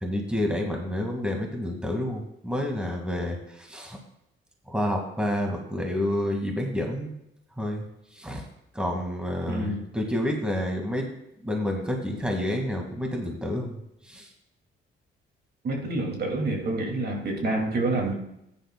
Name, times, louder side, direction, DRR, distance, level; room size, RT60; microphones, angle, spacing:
voice 1, 0.0-4.0 4.7-7.1 7.6-7.8 8.1-8.4 8.7-11.1 11.4-14.3, left 1 dB, 5° right, 1 dB, 1.9 m, -29 dB
voice 2, 9.5-9.8 15.6-18.1, right 2 dB, 55° right, 1 dB, 2.4 m, -27 dB
14.0 x 10.0 x 2.3 m, 0.81 s
cardioid pair, 90°, 20 cm